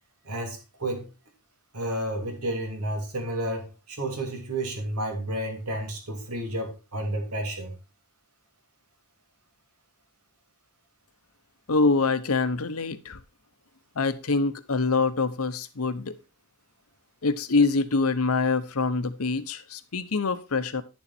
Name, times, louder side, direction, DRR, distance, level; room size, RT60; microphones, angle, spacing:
voice 1, 0.2-1.1 1.7-7.7, right 1 dB, 90° right, 3.0 m, -31 dB
voice 2, 11.7-13.2 14.0-16.1 17.2-20.8, left 3 dB, 70° left, 0.9 m, -25 dB
10.5 x 7.1 x 4.3 m
head